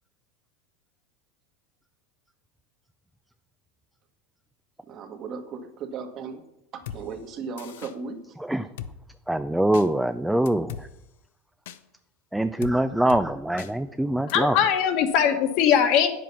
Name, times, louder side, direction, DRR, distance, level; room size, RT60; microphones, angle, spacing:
voice 1, 4.9-6.4 6.7-8.3, right 5 dB, 40° right, 5 dB, 1.6 m, -36 dB
Drum kit, 6.9-7.0 7.6-7.9 8.8-8.9 9.7-9.9 10.5-10.8 11.7-11.8 12.6-12.8 13.1-13.2 13.6-13.7 14.3-14.4, left 10 dB, 80° left, 0.7 m, -37 dB
voice 2, 9.3-10.9 12.3-14.6, right 1 dB, 5° right, 10 dB, 0.4 m, -24 dB
voice 3, 14.3-16.1, left 8 dB, 55° left, 6 dB, 1.5 m, -20 dB
9.0 x 7.6 x 5.6 m, 0.84 s
supercardioid pair, 115°, 0 cm